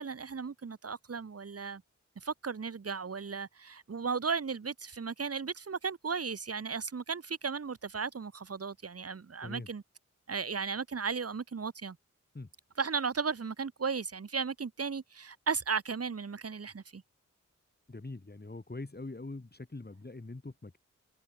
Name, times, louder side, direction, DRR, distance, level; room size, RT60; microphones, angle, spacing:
voice 1, 0.0-1.8 2.2-9.8 10.3-12.0 12.8-17.0, right 5 dB, 50° right, 1.2 m, -35 dB
voice 2, 17.9-20.8, left 2 dB, 30° left, 3.1 m, -43 dB
cardioid pair, 45°, 31 cm